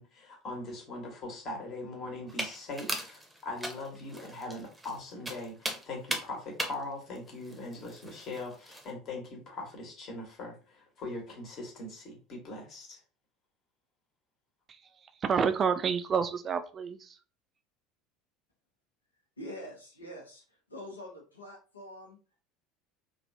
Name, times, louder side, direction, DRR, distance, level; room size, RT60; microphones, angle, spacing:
voice 1, 0.0-13.0, left 2 dB, 45° left, 1 dB, 1.3 m, -41 dB
sound 1, 2.3-8.9, right 1 dB, 10° right, 0.8 m, -39 dB
voice 2, 15.2-17.2, right 6 dB, 35° right, 9 dB, 0.4 m, -29 dB
voice 3, 19.4-22.2, equal, 85° left, -1 dB, 0.9 m, -45 dB
3.4 x 2.4 x 2.6 m, 0.35 s
figure-of-eight pair, 70°, 0 cm